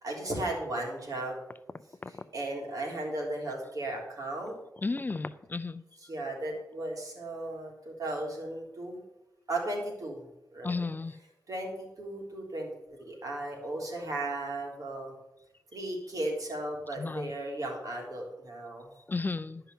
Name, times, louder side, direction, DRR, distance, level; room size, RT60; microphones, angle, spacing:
voice 1, 0.0-1.4 2.1-4.6 6.0-9.0 9.5-10.2 10.5-10.8 11.5-11.7 12.0-12.7 13.0-15.1 15.7-18.9, right 1 dB, 65° right, -1 dB, 3.3 m, -35 dB
voice 2, 4.8-5.8 10.6-11.1 17.0-17.3 19.1-19.6, left 3 dB, 30° left, 12 dB, 0.5 m, -33 dB
11.0 x 5.7 x 7.7 m, 0.92 s
wide cardioid pair, 85°, 7 cm